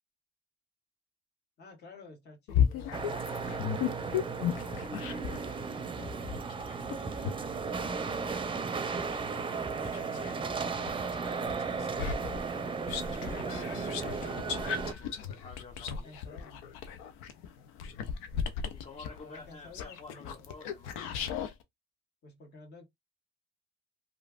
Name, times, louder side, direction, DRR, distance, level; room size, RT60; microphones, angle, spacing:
voice 1, 1.6-4.8 9.7-13.7 15.8-16.6 19.2-20.5 22.2-22.8, left 2 dB, 55° left, 1.7 m, -52 dB
sound 1, 2.5-5.5 6.0-10.4 10.9-21.5, left 8 dB, 80° left, 0.6 m, -35 dB
sound 2, 2.9-14.9, right 5 dB, 25° right, 0.6 m, -35 dB
voice 2, 5.0-6.2 9.5-10.7 13.4-16.2 18.7-21.0, left 4 dB, 35° left, 0.8 m, -51 dB
3.1 x 2.5 x 2.4 m
supercardioid pair, 65°, 20 cm